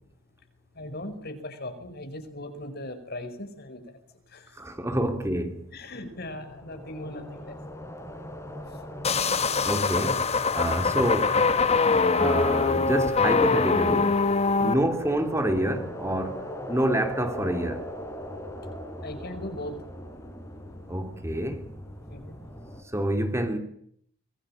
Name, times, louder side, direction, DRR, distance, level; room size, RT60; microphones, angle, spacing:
voice 1, 0.8-3.8 4.3-4.5 5.7-7.5 10.6-10.8 14.6-14.7 19.0-19.7 22.1-22.4, left 1 dB, 55° left, 5.1 m, -38 dB
voice 2, 4.5-5.7 9.6-10.3 10.5-11.6 12.1-14.1 14.6-17.9 20.9-21.7 22.9-23.6, right 1 dB, 15° right, 2.9 m, -27 dB
sound 1, 5.8-22.8, equal, 15° left, 4.3 m, -40 dB
sound 2, 9.0-14.7, left 4 dB, 35° left, 1.3 m, -23 dB
25.0 x 22.0 x 8.8 m
head